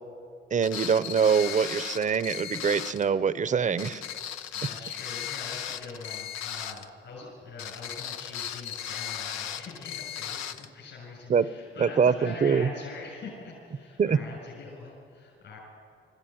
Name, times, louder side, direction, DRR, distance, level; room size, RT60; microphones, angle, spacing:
voice 1, 0.5-4.0 11.3-11.5 11.8-12.7 14.0-14.2, right 6 dB, 40° right, 15 dB, 0.8 m, -24 dB
sound 1, 0.6-3.1 3.8-6.9 7.6-10.7, left 10 dB, 90° left, 0.8 m, -36 dB
voice 2, 4.5-15.6, left 3 dB, 65° left, -4 dB, 7.0 m, -43 dB
24.0 x 14.0 x 9.3 m, 2.5 s
cardioid pair, 90°, 20 cm